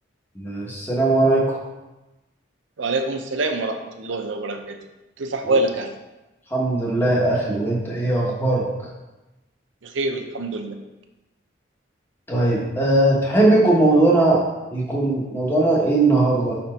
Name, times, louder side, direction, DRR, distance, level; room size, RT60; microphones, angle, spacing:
voice 1, 0.4-1.6 6.5-8.7 12.3-14.4 14.7-16.6, right 2 dB, 10° left, -3 dB, 1.0 m, -19 dB
voice 2, 2.8-4.8 5.2-5.9 9.8-10.8, right 2 dB, 85° right, 5 dB, 0.6 m, -25 dB
5.1 x 4.2 x 4.3 m, 1.0 s
head